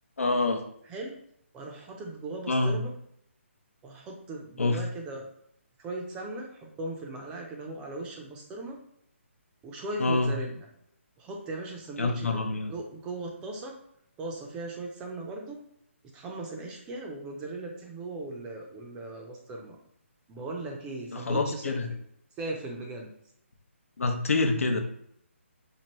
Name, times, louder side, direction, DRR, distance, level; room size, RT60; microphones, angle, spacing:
voice 1, 0.2-0.6 2.5-2.8 4.6-4.8 10.0-10.3 12.0-12.7 21.1-21.9 24.0-24.8, left 3 dB, 90° left, 5 dB, 0.7 m, -26 dB
voice 2, 1.5-2.9 3.8-5.3 5.8-8.8 9.6-10.7 11.2-12.4 12.7-13.8 14.2-15.6 16.1-19.8 20.3-22.0 22.4-23.1, right 2 dB, 15° right, 0 dB, 0.5 m, -38 dB
4.4 x 2.5 x 3.0 m, 0.70 s
hypercardioid pair, 160°, 7 cm